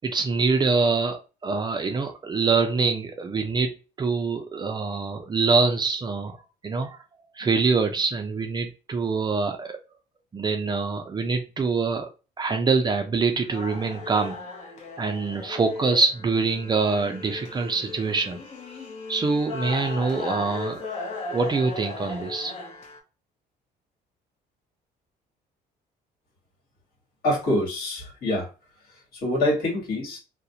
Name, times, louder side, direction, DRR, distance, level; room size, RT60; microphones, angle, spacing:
voice 1, 0.0-3.7 4.0-6.4 6.6-7.0 7.4-9.8 10.3-12.1 12.4-14.6 15.0-18.4 19.1-20.9 21.3-22.5, right 4 dB, 25° right, 5 dB, 0.4 m, -25 dB
sound 1, 13.4-23.0, left 3 dB, 45° left, 0.7 m, -37 dB
voice 2, 27.2-28.5 29.1-30.2, left 1 dB, 65° left, -3 dB, 1.3 m, -25 dB
2.3 x 2.1 x 2.7 m, 0.31 s
cardioid pair, 110°, 17 cm